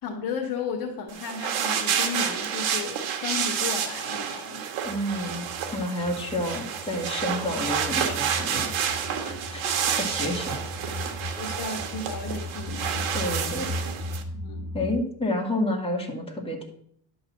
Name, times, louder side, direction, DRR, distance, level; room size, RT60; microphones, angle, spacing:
voice 1, 0.0-4.6 9.6-9.8 11.4-13.1 14.3-14.7, left 5 dB, 45° left, -2 dB, 1.5 m, -34 dB
sound 1, 1.1-14.2, right 8 dB, 90° right, 1.4 m, -29 dB
voice 2, 4.8-5.5 5.7-8.7 9.2-10.6 13.1-13.7 14.7-16.6, left 1 dB, 10° left, 0 dB, 1.9 m, -30 dB
sound 2, 4.8-15.0, left 1 dB, 5° right, 1.9 m, -37 dB
11.0 x 4.0 x 7.2 m, 0.67 s
cardioid pair, 145°, 45 cm